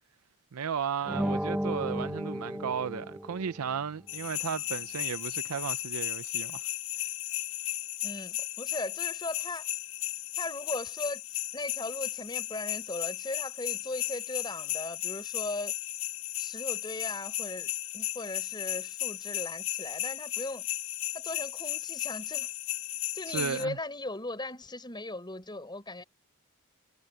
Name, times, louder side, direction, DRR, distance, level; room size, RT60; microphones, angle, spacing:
voice 1, 0.5-6.6 23.3-23.8, right 7 dB, 85° right, 0.5 m, -34 dB
sound 1, 1.0-3.7, equal, 5° right, 1.0 m, -33 dB
sound 2, 4.1-23.6, left 14 dB, 60° left, 2.3 m, -35 dB
voice 2, 8.0-9.7 10.4-11.2 11.5-15.7 16.4-20.7 21.1-22.5 23.1-26.0, left 2 dB, 20° left, 5.3 m, -38 dB
head